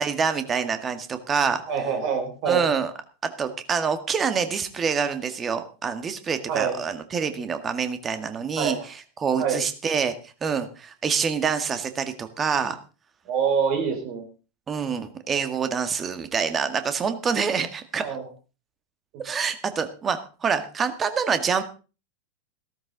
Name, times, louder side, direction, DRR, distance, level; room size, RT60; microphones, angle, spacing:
voice 1, 0.0-1.6 2.5-2.9 3.2-8.8 9.2-10.2 10.4-12.8 14.7-18.1 19.2-21.6, right 6 dB, 20° right, 9 dB, 1.9 m, -26 dB
voice 2, 1.7-2.7 6.5-6.8 8.6-8.9 9.4-9.6 13.3-14.2 18.0-18.3, right 6 dB, 45° right, 4 dB, 3.8 m, -25 dB
16.0 x 13.5 x 4.0 m, 0.34 s
figure-of-eight pair, 90°, 0 cm